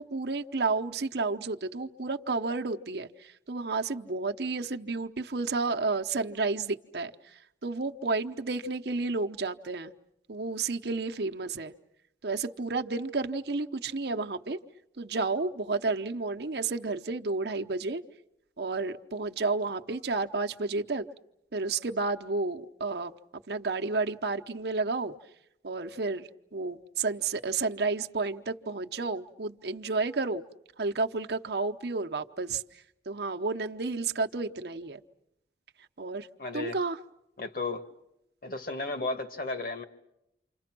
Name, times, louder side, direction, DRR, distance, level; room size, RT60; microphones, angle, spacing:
voice 1, 0.0-7.1 7.6-9.9 10.3-11.7 12.2-14.6 15.0-18.0 18.6-21.1 21.5-23.1 23.5-25.1 25.6-30.4 30.8-32.6 33.1-35.0 36.0-36.3 36.5-37.0, right 3 dB, 65° right, 5 dB, 0.9 m, -31 dB
voice 2, 36.4-36.8 37.4-37.8 38.4-39.8, left 3 dB, 50° left, 7 dB, 1.7 m, -34 dB
29.5 x 26.5 x 6.1 m, 0.83 s
head